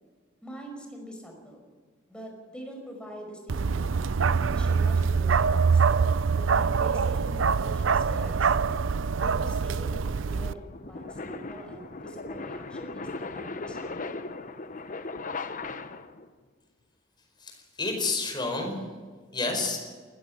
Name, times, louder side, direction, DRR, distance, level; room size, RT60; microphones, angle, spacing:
voice 1, 0.4-1.7 2.1-4.1 4.5-5.9 6.3-8.6 9.2-14.2, equal, 5° left, 1 dB, 5.3 m, -44 dB
Bark, 3.5-10.5, right 5 dB, 85° right, 0.5 m, -24 dB
sound 1, 8.7-16.3, left 3 dB, 45° left, 0.9 m, -38 dB
voice 2, 17.4-18.8 19.3-19.8, left 3 dB, 25° left, 3 dB, 4.9 m, -29 dB
20.0 x 14.5 x 8.9 m, 1.5 s
head